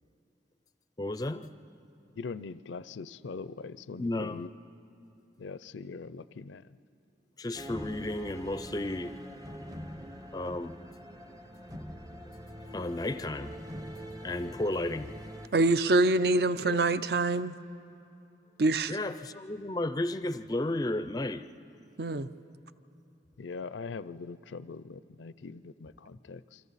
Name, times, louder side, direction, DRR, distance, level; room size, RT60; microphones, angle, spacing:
voice 1, 1.0-1.5 4.0-4.4 7.4-9.1 10.3-10.7 12.7-13.6 14.2-15.1 18.9-21.4, left 1 dB, 20° left, 0.4 m, -33 dB
voice 2, 2.2-4.5 5.4-6.6 16.6-16.8 23.4-26.6, left 4 dB, 90° left, 0.5 m, -41 dB
sound 1, 7.5-15.5, equal, 20° right, 0.7 m, -44 dB
voice 3, 15.5-17.5 18.6-19.0 22.0-22.3, right 2 dB, 60° right, 0.5 m, -25 dB
28.5 x 24.5 x 4.1 m
head